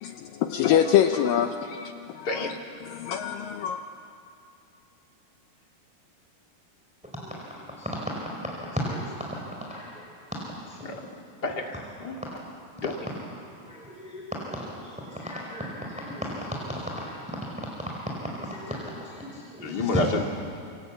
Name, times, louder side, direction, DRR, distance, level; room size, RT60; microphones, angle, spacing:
voice 1, 0.0-3.8, left 10 dB, 75° left, 6 dB, 2.2 m, -25 dB
voice 2, 8.7-9.1 9.7-10.1 13.6-14.2 14.5-14.6 15.2-16.3 16.9-17.2 18.4-18.8 19.2-20.1, equal, ahead, -3 dB, 3.9 m, -34 dB
voice 3, 11.4-12.2 12.8-12.9 19.6-20.2, left 3 dB, 35° left, 2 dB, 1.7 m, -28 dB
27.5 x 25.0 x 8.3 m, 2.5 s
omnidirectional pair, 4.6 m